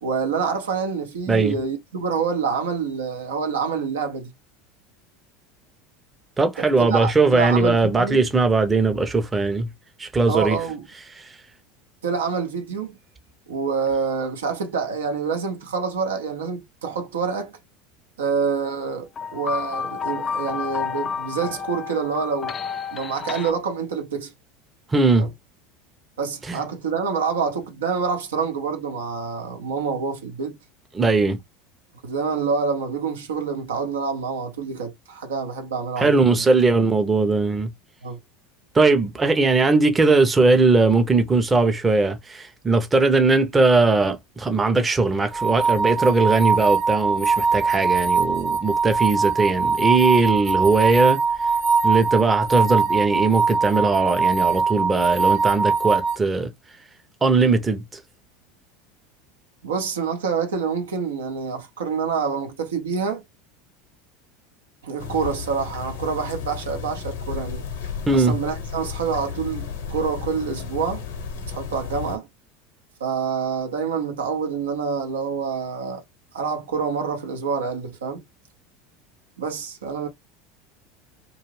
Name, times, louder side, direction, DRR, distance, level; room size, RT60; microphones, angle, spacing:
voice 1, 0.0-4.3 6.6-8.2 10.3-10.9 12.0-12.9 13.5-17.6 18.2-22.5 22.9-24.3 25.2-25.3 26.2-30.6 32.0-36.5 38.0-38.2 59.6-63.2 64.8-67.6 68.1-71.0 71.5-72.3 73.0-76.0 76.3-78.2 79.4-80.1, right 5 dB, 80° right, 0.6 m, -27 dB
voice 2, 6.4-9.7 10.0-10.6 24.9-25.3 26.5-26.6 30.9-31.4 36.0-37.7 38.7-51.2 51.8-56.5 57.2-57.8 68.1-68.4, right 3 dB, 20° right, 0.6 m, -19 dB
sound 1, 19.2-23.5, left 6 dB, 30° left, 0.3 m, -30 dB
sound 2, 45.3-56.2, right 4 dB, 40° right, 0.9 m, -21 dB
sound 3, 65.0-72.2, left 7 dB, 75° left, 0.8 m, -33 dB
2.5 x 2.3 x 3.1 m
hypercardioid pair, 80°, 0 cm